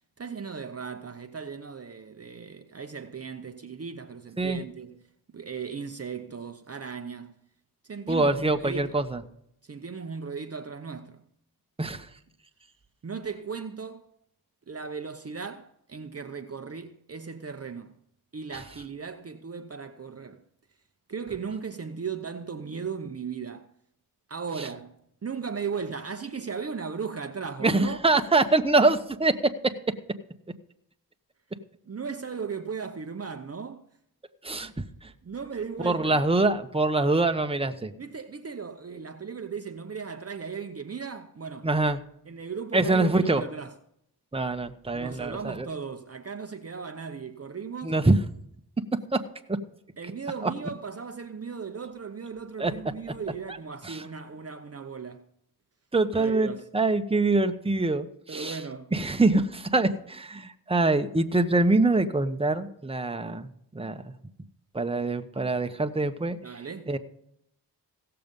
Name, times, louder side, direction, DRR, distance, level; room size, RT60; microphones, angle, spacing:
voice 1, 0.2-7.3 7.8-9.0 9.6-11.2 13.0-14.0 14.7-18.0 18.3-20.4 21.1-23.7 24.3-28.0 31.9-33.9 35.2-36.3 38.0-41.7 42.2-43.7 44.9-48.0 50.0-55.3 56.1-56.7 58.3-58.9 66.4-66.9, right 5 dB, 35° right, 0.8 m, -37 dB
voice 2, 8.1-9.2 11.8-12.1 27.6-29.5 34.4-34.7 35.0-35.1 35.8-37.9 41.6-42.0 42.7-43.4 44.3-45.7 47.8-48.2 49.1-49.2 50.4-50.5 52.6-52.7 53.8-54.0 55.9-58.5 58.9-63.5 63.7-64.0 64.7-66.4 66.9-67.0, right 2 dB, 15° right, 1.0 m, -24 dB
16.5 x 6.9 x 5.3 m
cardioid pair, 60°, 40 cm